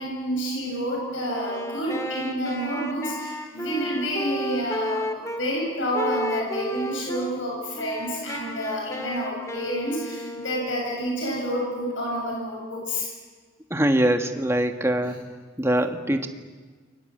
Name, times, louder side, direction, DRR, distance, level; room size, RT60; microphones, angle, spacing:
voice 1, 0.0-13.1 15.0-15.2, equal, 80° left, -2 dB, 7.6 m, -29 dB
Wind instrument woodwind instrument, 1.3-5.4 5.9-7.3 7.7-11.0, equal, 15° left, 2.2 m, -33 dB
voice 2, 13.7-15.2 15.6-16.3, right 1 dB, 15° right, 6 dB, 1.5 m, -23 dB
29.0 x 23.5 x 7.8 m, 1.4 s
head